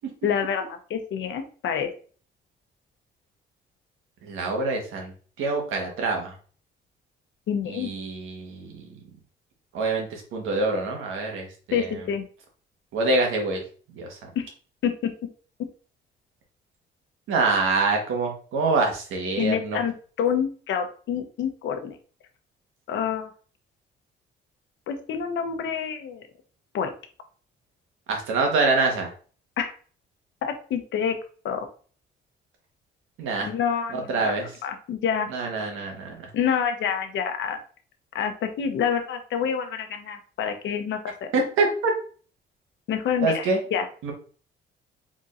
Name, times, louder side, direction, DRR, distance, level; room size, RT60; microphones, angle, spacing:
voice 1, 0.2-1.9 7.5-7.9 11.7-12.2 14.3-14.5 14.8-15.1 15.6-15.7 19.4-19.9 20.2-22.0 22.9-23.3 24.9-26.3 26.7-26.9 29.6-29.7 30.4-31.2 31.4-31.7 33.4-34.3 34.6-35.3 36.3-37.6 38.1-41.3 42.9-43.4 43.7-43.8, left 7 dB, 70° left, 6 dB, 0.8 m, -27 dB
voice 2, 4.2-6.4 7.6-8.9 9.7-12.0 12.9-13.6 13.9-14.3 17.3-19.8 28.1-29.1 33.2-33.5 33.9-34.5 35.3-36.3 41.3-41.9 43.2-43.6 44.0-44.1, right 3 dB, 85° right, 2 dB, 1.3 m, -26 dB
4.1 x 3.6 x 2.5 m, 0.41 s
cardioid pair, 90°, 20 cm